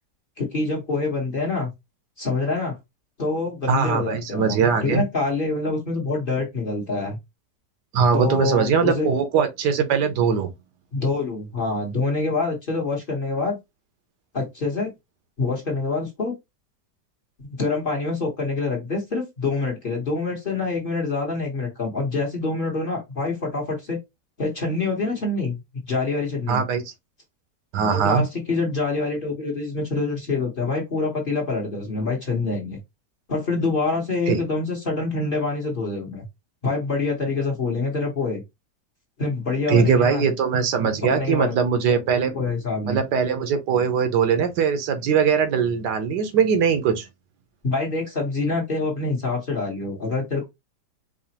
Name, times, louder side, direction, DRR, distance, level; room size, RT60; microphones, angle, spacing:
voice 1, 0.4-1.7 2.2-2.7 3.2-7.2 8.1-9.1 10.9-13.6 14.3-14.9 15.4-16.3 17.4-24.0 24.4-25.6 25.9-26.6 27.9-32.8 33.3-36.2 36.6-38.4 39.2-40.2 41.0-41.5 42.3-43.0 47.6-50.4, left 3 dB, 35° left, 1.0 m, -26 dB
voice 2, 3.7-5.0 7.9-10.5 26.5-26.8 27.7-28.2 34.3-34.4 39.7-42.3 42.9-47.1, right 6 dB, 80° right, 1.4 m, -21 dB
4.9 x 2.4 x 2.9 m
omnidirectional pair, 1.8 m